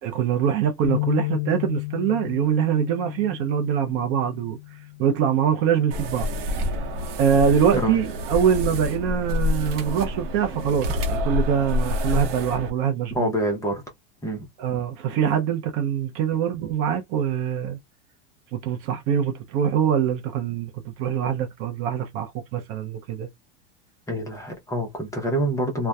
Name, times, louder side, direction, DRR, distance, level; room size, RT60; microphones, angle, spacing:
voice 1, 0.0-4.6 5.0-6.3 7.2-13.3 14.6-17.8 18.5-23.3, right 8 dB, 40° right, 0.5 m, -24 dB
sound 1, 0.8-7.1, left 22 dB, 60° left, 0.4 m, -33 dB
sound 2, 5.9-12.7, left 2 dB, 60° right, 0.9 m, -27 dB
voice 2, 13.1-13.8 14.2-14.4 24.1-25.9, right 1 dB, 10° left, 0.7 m, -26 dB
2.5 x 2.2 x 2.2 m
supercardioid pair, 130°, 34 cm